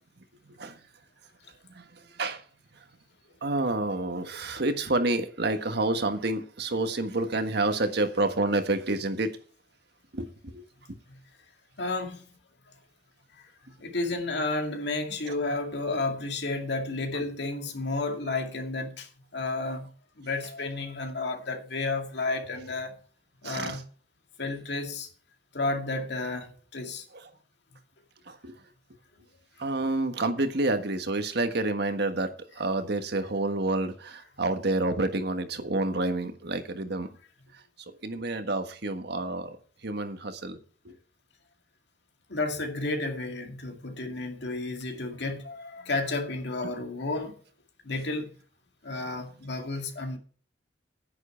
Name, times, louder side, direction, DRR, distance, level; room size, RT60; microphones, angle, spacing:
voice 1, 0.4-0.8 1.7-2.4 3.4-9.3 10.1-10.6 23.4-23.8 27.1-27.2 28.3-28.6 29.6-37.1 38.0-39.6 39.8-40.6 40.8-41.0, right 2 dB, 60° right, 1.5 m, -29 dB
voice 2, 11.8-12.3 13.3-13.5 13.8-19.9 20.2-23.0 23.4-23.8 24.4-25.1 25.5-27.0 42.3-47.4 47.8-48.3 48.8-50.2, left 3 dB, 65° left, 2.2 m, -32 dB
10.0 x 9.6 x 4.5 m
head